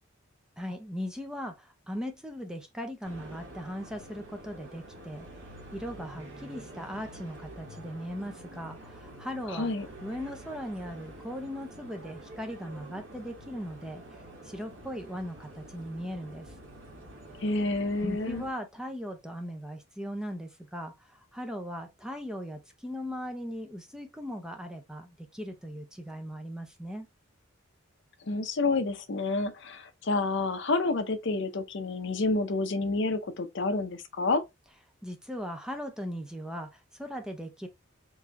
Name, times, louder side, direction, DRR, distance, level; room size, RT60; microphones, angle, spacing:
voice 1, 0.6-5.3 5.7-9.7 10.0-16.5 18.0-27.1 35.0-37.7, equal, 5° right, 0.7 m, -38 dB
sound 1, 3.0-18.5, right 1 dB, 65° right, 1.6 m, -47 dB
voice 2, 9.5-9.9 17.4-18.4 28.3-34.4, left 3 dB, 60° left, 0.7 m, -29 dB
4.7 x 2.7 x 3.4 m
head